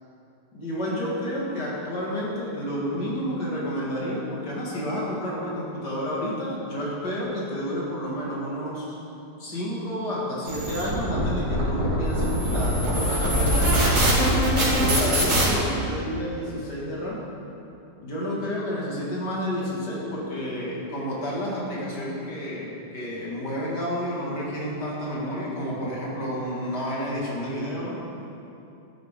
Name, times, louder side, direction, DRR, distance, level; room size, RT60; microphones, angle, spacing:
voice 1, 0.5-9.0 9.4-13.9 14.5-17.2 18.0-28.0, equal, 70° left, -5 dB, 2.6 m, -30 dB
sound 1, 10.5-15.4, equal, 60° right, 3.1 m, -22 dB
13.0 x 11.5 x 3.7 m, 2.8 s
omnidirectional pair, 1.9 m